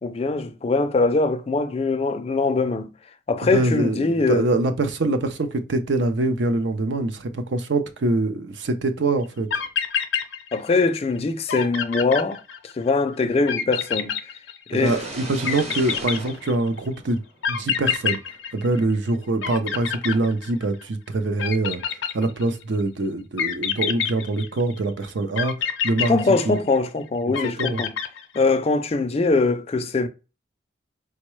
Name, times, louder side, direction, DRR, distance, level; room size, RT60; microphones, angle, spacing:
voice 1, 0.0-2.9 3.3-4.4 10.5-12.4 12.8-14.1 14.7-15.0 26.1-27.9 28.3-30.1, left 3 dB, 30° left, 0.3 m, -22 dB
voice 2, 3.5-9.6 14.7-17.2 17.5-18.2 18.5-26.2 26.4-26.6 27.6-27.8, right 2 dB, 75° right, 0.5 m, -24 dB
sound 1, 9.2-9.3 9.5-10.9 11.2-11.3 11.5-12.9 13.5-14.9 15.4-16.8 17.4-19.1 19.4-20.8 21.4-22.6 23.4-24.8 25.4-26.9 27.3-28.6, left 7 dB, 80° left, 0.5 m, -27 dB
sound 2, 14.7-17.5, right 1 dB, 35° right, 0.8 m, -37 dB
4.5 x 2.1 x 3.0 m
head